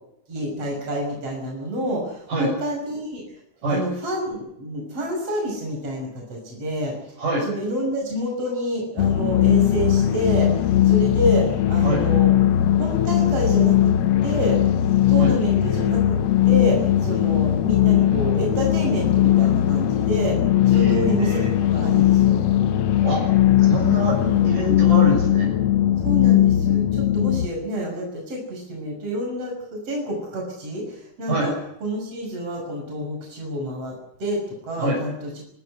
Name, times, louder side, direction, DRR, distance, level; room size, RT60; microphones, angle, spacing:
voice 1, 0.3-3.2 3.7-6.9 7.4-10.5 10.8-12.3 12.8-13.9 14.2-14.7 15.1-16.2 16.5-20.4 20.7-22.4 24.2-24.3 26.0-31.5 31.8-35.4, equal, 45° right, 0 dB, 7.0 m, -28 dB
sound 1, 9.0-27.5, left 11 dB, 65° left, 1.8 m, -19 dB
voice 2, 20.7-21.5 23.0-23.2 23.7-24.2 24.4-25.5 31.3-31.6 34.8-35.0, right 1 dB, 70° right, 1 dB, 8.2 m, -25 dB
26.0 x 12.5 x 9.9 m, 0.77 s
omnidirectional pair, 3.8 m